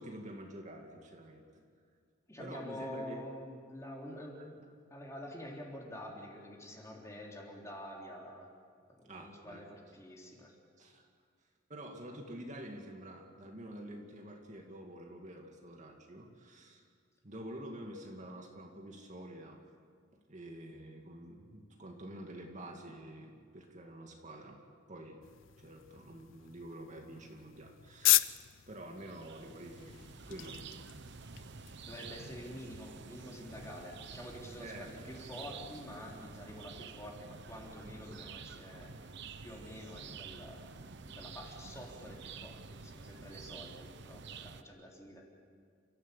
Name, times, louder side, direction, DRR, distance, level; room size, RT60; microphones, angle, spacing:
voice 1, 0.0-1.4 2.4-3.2 4.4-4.5 9.1-9.6 10.8-11.0 11.7-16.8 17.2-19.6 20.3-24.6 24.9-25.2 25.6-30.0 30.3-30.6 34.6-34.9, right 1 dB, 40° right, 2 dB, 2.4 m, -48 dB
voice 2, 2.3-8.5 8.9-10.5 31.8-38.9 39.4-40.7 41.1-45.2, left 1 dB, 15° left, -1 dB, 3.8 m, -47 dB
sound 1, 25.2-32.3, left 16 dB, 80° left, 0.6 m, -36 dB
sound 2, 28.9-44.6, right 4 dB, 65° right, 1.0 m, -49 dB
30.0 x 15.0 x 8.4 m, 2.1 s
head